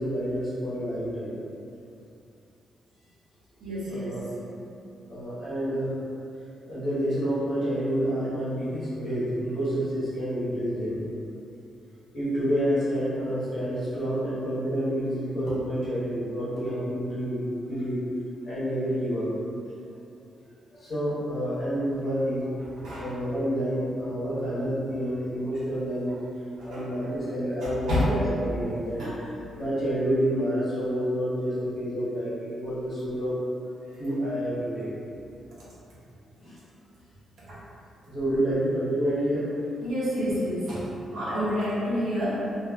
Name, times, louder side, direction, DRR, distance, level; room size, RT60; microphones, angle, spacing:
voice 1, 0.0-1.4 3.9-4.2 5.1-5.9 6.7-11.0 12.1-18.0 18.4-19.3 20.7-22.5 22.7-26.2 26.6-29.0 29.6-33.3 34.0-34.9 36.4-36.6 38.1-39.5, equal, 45° left, -11 dB, 1.0 m, -28 dB
voice 2, 3.6-4.3 22.8-23.1 26.6-26.8 27.6-28.0 29.0-29.3 37.4-37.6 39.8-42.6, equal, 90° right, -9 dB, 0.8 m, -29 dB
2.5 x 2.5 x 2.2 m, 2.6 s
wide cardioid pair, 165°, 0 cm